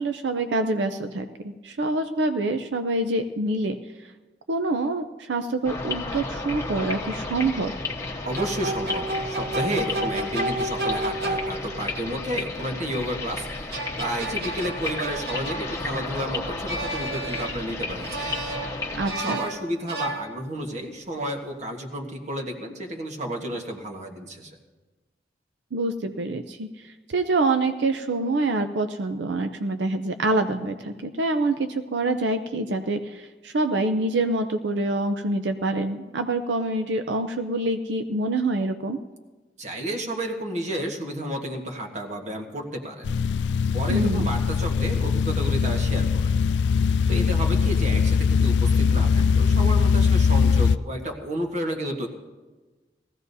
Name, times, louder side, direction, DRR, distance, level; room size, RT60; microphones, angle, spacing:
voice 1, 0.0-3.8 4.5-7.7 19.0-19.4 25.7-26.7 27.1-39.0 43.9-44.3, right 2 dB, 90° right, 8 dB, 0.6 m, -26 dB
sound 1, 5.6-19.1, left 3 dB, 15° left, 1.2 m, -33 dB
voice 2, 8.2-13.7 14.0-18.4 19.2-24.5 39.6-43.1 43.7-46.3 47.1-52.1, right 1 dB, 40° right, 3 dB, 1.4 m, -31 dB
sound 2, 8.2-11.9 13.5-16.2 16.7-17.8 18.0-20.7, right 1 dB, 65° right, 1.4 m, -32 dB
sound 3, 43.0-50.8, left 5 dB, 80° left, 0.4 m, -21 dB
19.5 x 15.0 x 2.7 m, 1.3 s
head